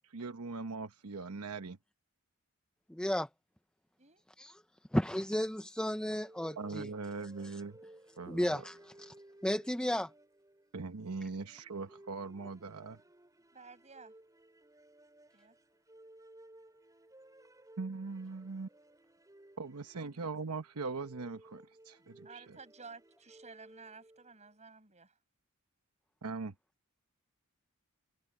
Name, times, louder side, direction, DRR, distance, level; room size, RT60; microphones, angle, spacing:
voice 1, 0.1-1.8 6.6-7.8 8.2-8.6 10.7-13.0 17.8-18.7 19.6-22.6 26.2-26.5, right 4 dB, 80° right, 1.0 m, -41 dB
voice 2, 2.9-3.3 4.4-4.6 4.9-6.9 7.4-7.6 8.3-9.1 9.4-10.1, equal, 5° left, 0.5 m, -33 dB
Small phrase, 6.0-24.5, right 1 dB, 15° right, 3.3 m, -59 dB
voice 3, 13.5-14.1 15.3-15.6 19.9-20.4 22.0-25.1, right 4 dB, 30° right, 7.8 m, -54 dB
head